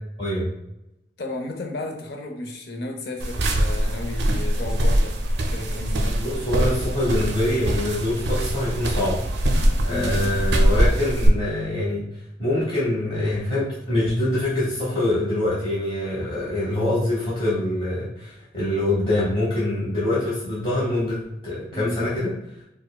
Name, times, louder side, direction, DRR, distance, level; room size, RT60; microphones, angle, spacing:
voice 1, 0.2-0.5 6.2-9.2 9.5-12.0 12.4-21.2 21.4-22.3, left 1 dB, 30° left, -9 dB, 1.0 m, -24 dB
voice 2, 1.2-5.2 5.5-6.2 9.9-10.2 21.7-22.2, left 2 dB, 65° left, 2 dB, 0.6 m, -33 dB
sound 1, 3.2-11.3, right 1 dB, 80° right, 0.5 m, -23 dB
4.6 x 2.1 x 2.3 m, 0.85 s
head